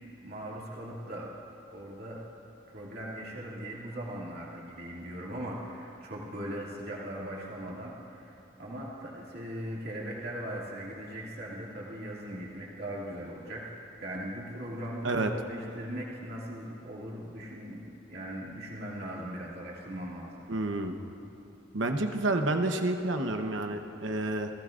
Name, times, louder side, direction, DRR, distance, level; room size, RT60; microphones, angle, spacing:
voice 1, 0.2-1.3 1.7-2.2 2.7-20.4, right 1 dB, 55° right, -5 dB, 2.4 m, -39 dB
voice 2, 20.5-20.9 21.7-24.5, right 2 dB, 75° right, 5 dB, 1.0 m, -29 dB
30.0 x 16.0 x 2.6 m, 2.8 s
head